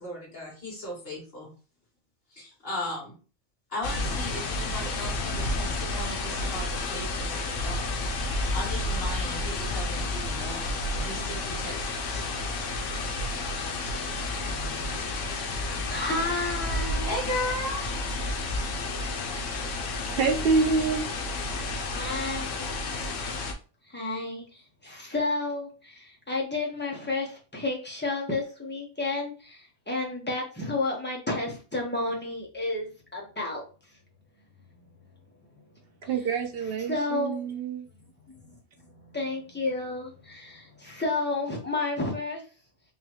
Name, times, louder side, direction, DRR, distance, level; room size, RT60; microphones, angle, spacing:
voice 1, 0.0-1.5 2.3-3.1 3.7-8.0 8.5-12.3 17.0-17.9, left 1 dB, 50° left, 2.2 m, -36 dB
sound 1, 3.8-23.5, left 2 dB, 85° left, 1.0 m, -31 dB
voice 2, 13.6-17.2 21.9-22.7 23.9-33.6 36.9-37.5 38.3-42.4, left 2 dB, 10° left, 1.0 m, -32 dB
voice 3, 20.2-21.0 36.1-37.9, right 4 dB, 55° right, 0.9 m, -26 dB
3.9 x 2.9 x 3.0 m
omnidirectional pair, 1.3 m